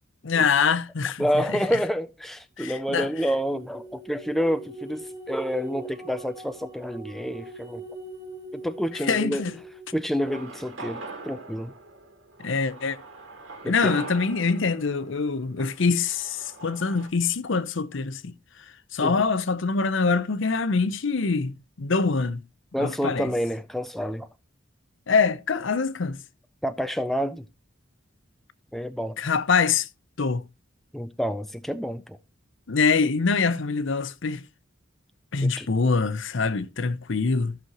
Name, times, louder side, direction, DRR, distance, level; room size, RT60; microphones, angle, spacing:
voice 1, 0.2-1.3 1.5-1.6 2.6-3.1 8.9-9.5 12.4-13.0 13.7-18.3 18.9-22.4 22.8-23.3 25.1-26.2 29.2-29.9 30.2-30.5 32.7-34.4 35.3-37.6, left 4 dB, 65° left, 0.7 m, -24 dB
voice 2, 1.2-7.8 8.5-9.4 9.9-11.7 13.6-13.9 19.0-19.1 22.7-24.3 26.6-27.5 28.7-29.2 30.9-32.2 35.4-35.7, equal, ahead, 0.4 m, -28 dB
sound 1, 2.8-10.6, right 2 dB, 20° right, 1.8 m, -42 dB
sound 2, 10.2-17.1, right 3 dB, 70° right, 2.5 m, -42 dB
14.5 x 6.3 x 2.9 m
head